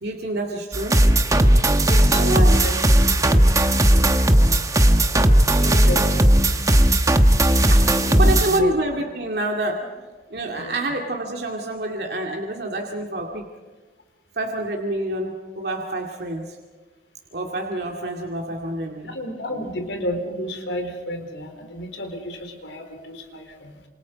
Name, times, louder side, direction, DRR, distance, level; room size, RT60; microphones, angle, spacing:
voice 1, 0.0-1.0 2.1-2.5 7.7-13.4 14.4-16.6 17.3-19.2, right 1 dB, 60° right, 1 dB, 2.3 m, -27 dB
sound 1, 0.7-8.6, right 1 dB, 20° right, 1.2 m, -16 dB
voice 2, 1.8-2.8 3.2-3.5 5.5-6.6 8.0-8.7 10.5-10.8 19.0-23.7, left 1 dB, 85° left, 5 dB, 4.1 m, -32 dB
28.0 x 26.5 x 5.2 m, 1.3 s
head